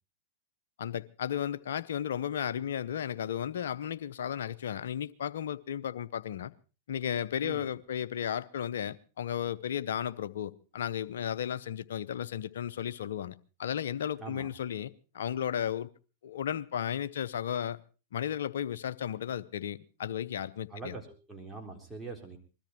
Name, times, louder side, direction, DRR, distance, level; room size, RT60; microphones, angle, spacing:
voice 1, 0.8-6.5 6.9-15.9 16.2-17.8 18.1-21.0, left 9 dB, 70° left, 0.7 m, -34 dB
voice 2, 20.7-22.4, right 3 dB, 10° right, 4.0 m, -43 dB
21.0 x 13.5 x 4.4 m
hypercardioid pair, 105°, 0 cm